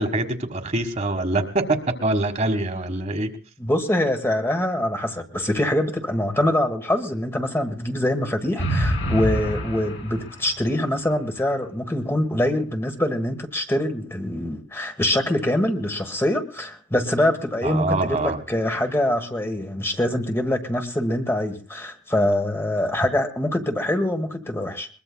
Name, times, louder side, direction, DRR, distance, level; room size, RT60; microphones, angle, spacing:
voice 1, 0.0-3.3 17.6-18.4, right 2 dB, 40° right, 6 dB, 1.5 m, -24 dB
voice 2, 3.6-24.9, left 1 dB, 15° left, 5 dB, 1.2 m, -24 dB
sound 1, 8.6-10.6, equal, 70° left, 5.7 m, -26 dB
22.0 x 21.0 x 2.2 m, 0.38 s
head